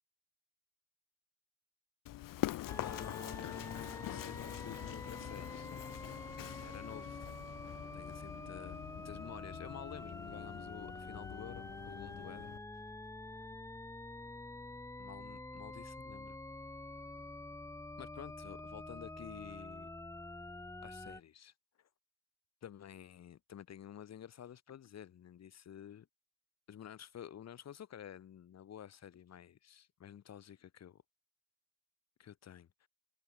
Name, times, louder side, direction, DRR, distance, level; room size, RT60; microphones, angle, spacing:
Run, 2.1-12.6, left 15 dB, 65° left, 0.8 m, -45 dB
sound 1, 2.7-21.2, left 2 dB, 10° left, 2.1 m, -47 dB
voice 1, 2.8-5.7 6.5-12.5 15.0-16.4 18.0-19.9 20.8-21.9 22.6-26.1 26.7-31.0 32.2-32.9, left 9 dB, 45° left, 2.8 m, -51 dB
cardioid pair, 180°, 35 cm